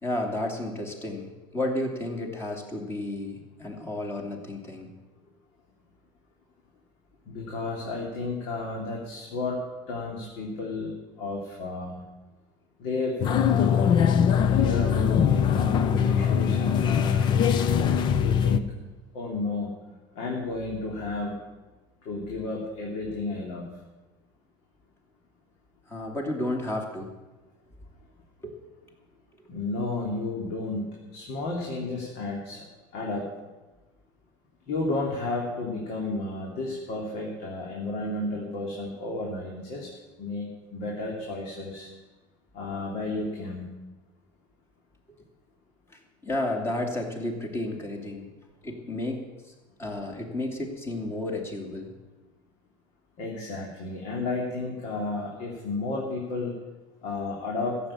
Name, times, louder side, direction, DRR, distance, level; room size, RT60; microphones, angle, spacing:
voice 1, 0.0-4.9 25.9-27.1 28.4-28.5 45.9-48.3 48.6-49.2 49.8-51.9, left 1 dB, 20° left, 1 dB, 2.5 m, -32 dB
voice 2, 7.3-9.6 9.9-12.0 12.8-13.2 13.5-14.2 14.5-17.3 18.2-18.7 19.1-19.7 20.1-21.4 22.0-23.7 29.5-32.7 32.9-33.3 34.7-39.9 40.2-41.9 42.5-43.6 53.2-56.5 57.0-57.8, left 3 dB, 65° left, -2 dB, 3.0 m, -32 dB
sound 1, 13.2-18.6, left 8 dB, 40° left, 0.7 m, -22 dB
15.0 x 7.7 x 8.6 m, 1.2 s
cardioid pair, 145°, 12 cm